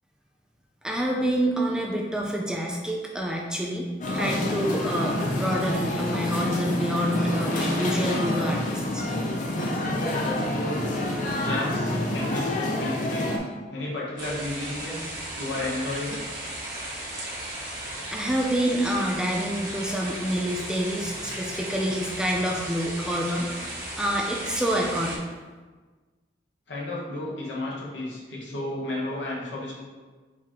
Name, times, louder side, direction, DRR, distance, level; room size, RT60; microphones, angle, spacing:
voice 1, 0.8-9.0 18.1-25.2, equal, 5° right, -1 dB, 0.4 m, -27 dB
sound 1, 4.0-13.4, left 1 dB, 45° left, 0.6 m, -28 dB
voice 2, 9.9-10.8 11.3-13.3 13.7-16.2 26.7-29.7, left 1 dB, 85° left, -6 dB, 1.1 m, -32 dB
sound 2, 14.2-25.2, right 1 dB, 50° right, 1.2 m, -36 dB
4.6 x 3.6 x 2.9 m, 1.4 s
head